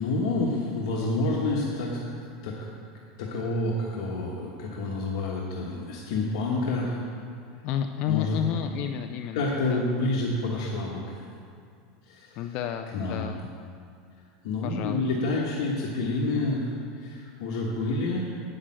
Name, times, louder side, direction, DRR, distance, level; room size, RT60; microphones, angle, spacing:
voice 1, 0.0-2.0 2.4-2.5 3.2-7.0 8.1-8.4 9.3-11.2 12.0-12.4 12.9-13.3 14.4-18.3, left 2 dB, 70° left, -3 dB, 1.3 m, -28 dB
voice 2, 7.6-9.8 12.4-13.5 14.6-15.0, left 10 dB, 40° left, 7 dB, 0.3 m, -31 dB
8.8 x 6.6 x 7.4 m, 2.3 s
supercardioid pair, 170°, 3 cm